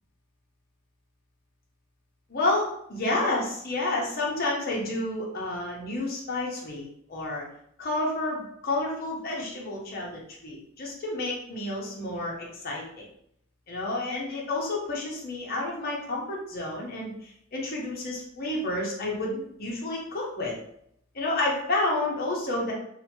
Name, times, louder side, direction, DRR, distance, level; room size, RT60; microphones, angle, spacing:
voice 1, 2.3-7.4 7.8-13.0 13.7-20.6 21.1-22.7, left 2 dB, 50° left, -3 dB, 0.8 m, -30 dB
2.8 x 2.2 x 2.9 m, 0.72 s
head